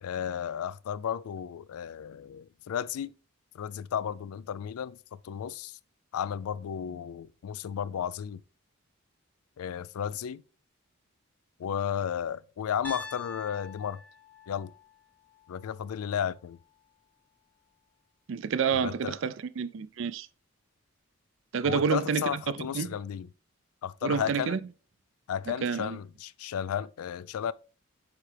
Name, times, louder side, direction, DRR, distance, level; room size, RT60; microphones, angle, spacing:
voice 1, 0.0-3.1 3.5-5.8 6.1-8.4 9.6-10.4 11.6-14.0 14.5-14.7 15.5-16.6 18.7-19.2 21.6-23.3 23.8-24.6 25.3-27.5, left 8 dB, 85° left, 0.3 m, -33 dB
Piano, 12.8-16.9, left 2 dB, 5° left, 0.7 m, -46 dB
voice 2, 18.3-20.3 21.5-22.9 24.0-24.6 25.5-26.0, right 6 dB, 60° right, 0.4 m, -29 dB
7.3 x 4.7 x 3.3 m
head